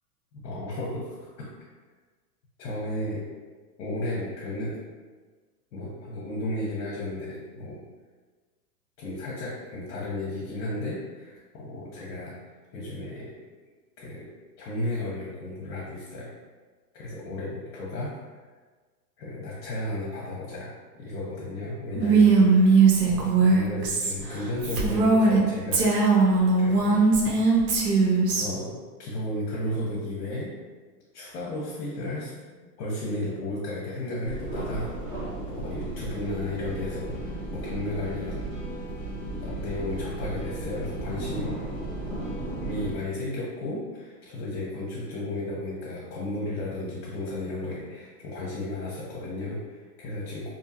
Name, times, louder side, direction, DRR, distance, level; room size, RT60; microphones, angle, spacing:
voice 1, 0.4-1.5 2.6-3.2 3.8-4.8 5.7-7.8 9.0-12.3 12.7-13.3 14.0-14.3 14.6-16.3 16.9-18.2 19.2-26.0 26.6-27.0 28.0-28.1 28.4-30.5 31.1-32.3 32.6-38.5 39.3-41.7 42.6-50.5, left 1 dB, 65° left, -5 dB, 0.8 m, -34 dB
Female speech woman speaking, 21.9-25.4 25.7-28.4, right 4 dB, 70° right, 0.8 m, -20 dB
sound 1, 34.2-42.9, right 2 dB, 5° right, 0.6 m, -35 dB
2.6 x 2.2 x 2.7 m, 1.4 s
hypercardioid pair, 115°, 50 cm